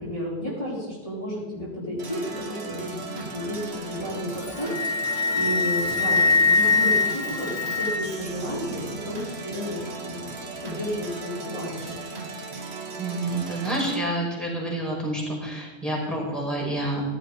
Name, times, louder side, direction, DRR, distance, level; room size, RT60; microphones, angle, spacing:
voice 1, 0.0-10.3 10.6-12.0, equal, 25° left, -8 dB, 4.9 m, -32 dB
sound 1, 2.0-14.0, right 3 dB, 60° right, 1.9 m, -37 dB
Wind instrument woodwind instrument, 4.3-8.3, left 4 dB, 55° left, 1.2 m, -23 dB
voice 2, 13.0-17.0, right 1 dB, ahead, -4 dB, 5.9 m, -28 dB
16.0 x 13.5 x 4.2 m, 1.2 s
omnidirectional pair, 1.2 m